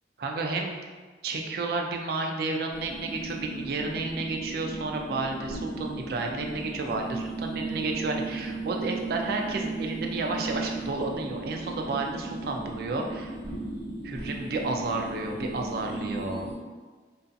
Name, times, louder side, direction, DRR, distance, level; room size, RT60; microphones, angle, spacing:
voice 1, 0.2-0.8 1.2-13.3 14.0-16.5, right 3 dB, 55° right, 2 dB, 0.3 m, -31 dB
sound 1, 2.7-16.5, right 2 dB, 15° right, 1.3 m, -36 dB
2.5 x 2.3 x 2.5 m, 1.4 s
head